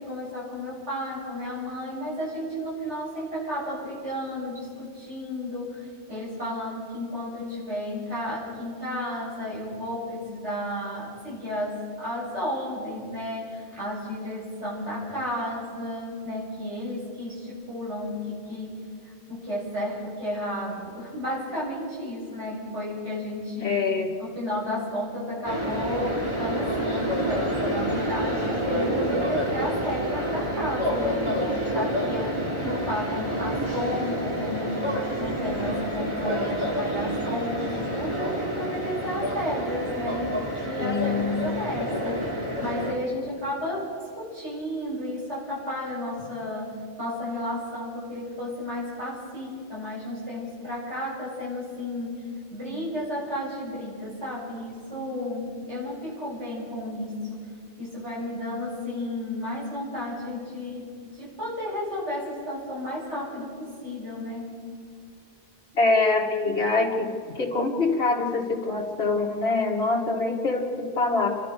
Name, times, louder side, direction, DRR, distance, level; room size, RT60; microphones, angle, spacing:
voice 1, 0.0-18.8 19.3-23.8 24.2-52.2 52.5-57.5 57.8-60.9 61.1-64.5, left 1 dB, 85° right, -6 dB, 8.2 m, -33 dB
voice 2, 23.6-24.1 40.8-41.5 65.7-71.3, left 3 dB, 65° left, -3 dB, 2.3 m, -24 dB
sound 1, 25.4-42.9, equal, 25° right, 3.5 m, -28 dB
29.5 x 13.0 x 6.8 m, 2.2 s
omnidirectional pair, 1.2 m